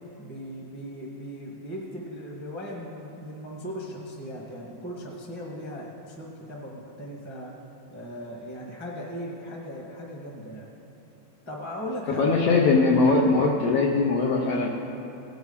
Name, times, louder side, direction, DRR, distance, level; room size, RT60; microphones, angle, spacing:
voice 1, 0.2-7.5 7.9-10.7 11.4-12.5, equal, 5° left, -2 dB, 0.9 m, -38 dB
voice 2, 12.2-14.7, left 3 dB, 70° left, 0 dB, 1.5 m, -21 dB
17.5 x 6.2 x 5.6 m, 3.0 s
omnidirectional pair, 3.4 m